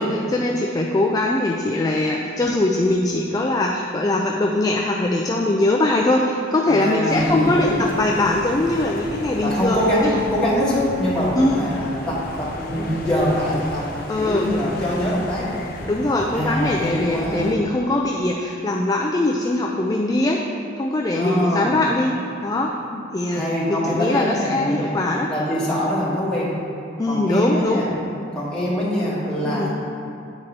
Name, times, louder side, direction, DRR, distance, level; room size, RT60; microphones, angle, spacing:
voice 1, 0.0-10.2 11.3-11.7 12.8-13.0 14.1-14.5 15.9-20.4 20.8-22.1 22.4-23.4 23.7-25.3 27.0-27.8 29.4-29.7, left 2 dB, 20° left, 0 dB, 0.4 m, -21 dB
voice 2, 6.6-7.9 9.4-13.9 14.2-15.5 16.3-17.5 21.1-21.8 23.3-25.0 25.3-26.6 27.1-27.9 28.3-29.7, equal, 5° left, -9 dB, 1.7 m, -23 dB
sound 1, 7.1-17.5, left 1 dB, 55° left, 0.7 m, -35 dB
8.2 x 4.1 x 5.3 m, 2.6 s
head